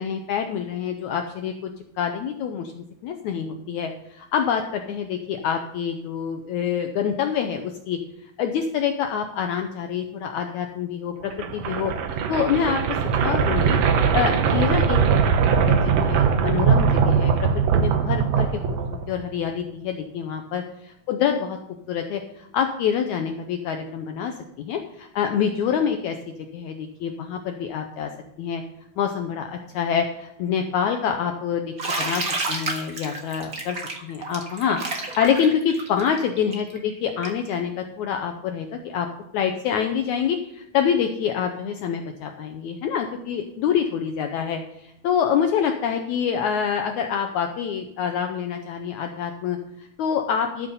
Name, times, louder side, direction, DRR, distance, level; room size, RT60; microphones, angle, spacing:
voice 1, 0.0-1.7 2.0-8.0 8.4-11.9 12.3-12.8 13.2-13.8 14.1-15.0 15.6-17.3 17.7-18.5 18.9-20.6 21.1-21.6 21.9-28.1 28.4-28.6 29.0-32.2 32.5-33.8 34.0-39.1 39.3-50.7, left 7 dB, 80° left, 5 dB, 1.7 m, -26 dB
sound 1, 11.3-19.3, right 6 dB, 70° right, 1.6 m, -21 dB
Bathtub (filling or washing), 31.8-37.5, right 3 dB, 40° right, 1.2 m, -30 dB
13.0 x 6.9 x 5.5 m, 0.78 s
omnidirectional pair, 4.2 m